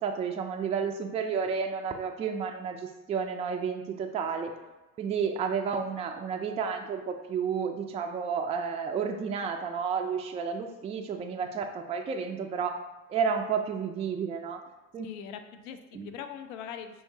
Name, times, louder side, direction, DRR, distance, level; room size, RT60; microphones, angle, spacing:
voice 1, 0.0-4.5 5.0-12.8 13.1-14.6 14.9-15.1 15.9-16.1, right 6 dB, 15° right, 4 dB, 0.3 m, -31 dB
voice 2, 15.0-17.0, left 8 dB, 60° left, 8 dB, 0.5 m, -42 dB
5.5 x 2.8 x 2.8 m, 1.1 s
figure-of-eight pair, 60°, 42 cm